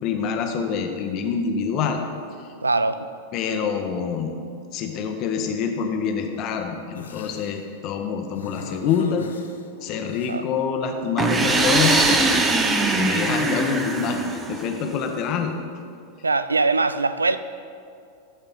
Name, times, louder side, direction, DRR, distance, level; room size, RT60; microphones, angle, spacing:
voice 1, 0.0-2.0 3.3-4.3 4.7-9.3 9.8-12.5 12.9-15.6, left 6 dB, 40° left, 4 dB, 0.9 m, -26 dB
voice 2, 2.6-3.1 10.3-10.4 16.2-17.4, right 3 dB, 80° right, 12 dB, 0.3 m, -21 dB
sound 1, 6.9-7.5 8.3-10.3 11.3-12.2, left 5 dB, 70° left, 0.6 m, -34 dB
sound 2, 11.2-14.9, right 3 dB, 15° right, 0.7 m, -21 dB
13.0 x 4.4 x 5.3 m, 2.4 s
figure-of-eight pair, 90°, 0 cm